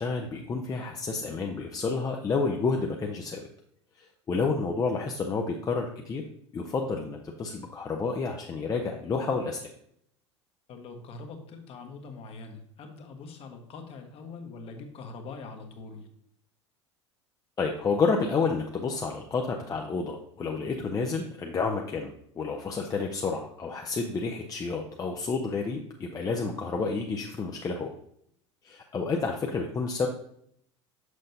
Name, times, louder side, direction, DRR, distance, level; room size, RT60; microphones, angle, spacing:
voice 1, 0.0-3.4 4.0-6.2 6.5-9.7 17.6-27.9 28.6-30.1, left 4 dB, 25° left, 2 dB, 0.6 m, -30 dB
voice 2, 10.7-16.1, left 4 dB, 40° left, 5 dB, 1.2 m, -43 dB
6.3 x 6.2 x 2.7 m, 0.68 s
figure-of-eight pair, 70°, 15 cm